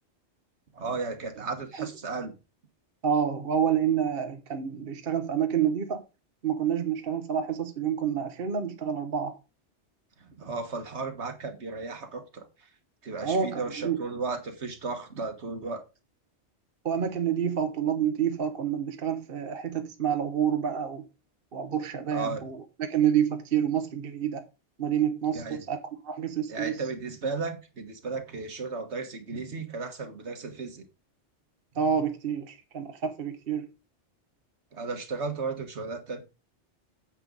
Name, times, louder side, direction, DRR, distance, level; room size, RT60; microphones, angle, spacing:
voice 1, 0.7-2.3 10.2-12.7 13.0-15.8 22.1-22.4 25.3-25.6 26.5-30.9 34.7-36.2, right 4 dB, 75° right, 1.8 m, -35 dB
voice 2, 3.0-6.0 6.4-9.4 13.2-14.0 16.8-21.0 21.5-24.4 24.8-25.8 26.0-26.7 31.8-33.7, right 8 dB, 55° right, 1.2 m, -28 dB
9.1 x 7.7 x 3.9 m
omnidirectional pair, 1.2 m